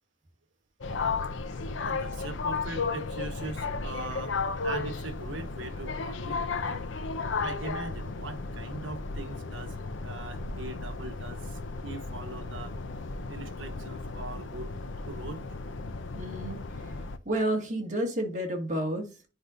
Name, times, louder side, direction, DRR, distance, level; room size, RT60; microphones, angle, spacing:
sound 1, 0.8-17.2, left 4 dB, 70° left, 0.7 m, -34 dB
voice 1, 1.8-6.9 7.4-9.8 10.0-12.8 13.3-14.7 15.1-15.4 18.3-18.4, right 2 dB, 75° right, 1.2 m, -41 dB
voice 2, 16.1-16.9 17.3-19.3, right 1 dB, 40° right, 1.9 m, -31 dB
10.0 x 5.0 x 2.5 m
head